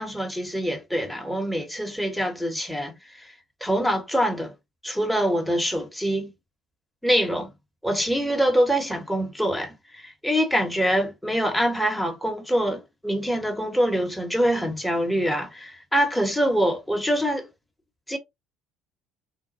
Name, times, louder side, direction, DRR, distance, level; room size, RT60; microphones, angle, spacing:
voice 1, 0.0-3.3 3.6-4.5 4.8-6.3 7.0-7.5 7.8-17.5 18.1-18.2, equal, ahead, 1.0 m, -25 dB
4.0 x 2.2 x 2.6 m
figure-of-eight pair, 55°, 0 cm